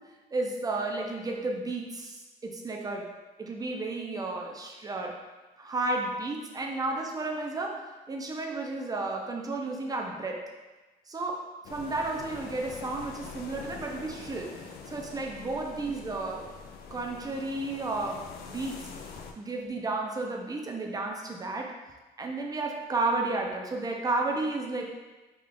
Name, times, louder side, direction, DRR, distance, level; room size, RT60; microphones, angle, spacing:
voice 1, 0.3-3.1 3.4-5.2 5.6-10.5 11.1-14.5 14.9-16.5 16.9-19.0 19.4-21.8 22.2-24.8, right 2 dB, 20° right, 1 dB, 0.5 m, -32 dB
sound 1, 11.6-19.3, left 5 dB, 70° left, 0.4 m, -44 dB
3.6 x 2.4 x 3.6 m, 1.2 s
cardioid pair, 110°, 17 cm